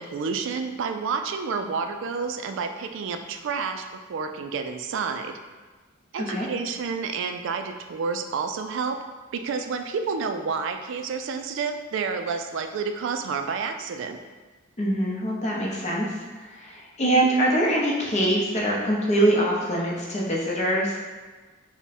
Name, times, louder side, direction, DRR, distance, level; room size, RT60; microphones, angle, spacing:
voice 1, 0.0-5.4 6.1-9.0 9.3-14.2 17.1-17.3, right 5 dB, 60° right, 7 dB, 0.3 m, -29 dB
voice 2, 6.2-6.5 14.8-21.0, right 1 dB, 35° left, -3 dB, 0.7 m, -24 dB
3.5 x 2.1 x 4.1 m, 1.3 s
head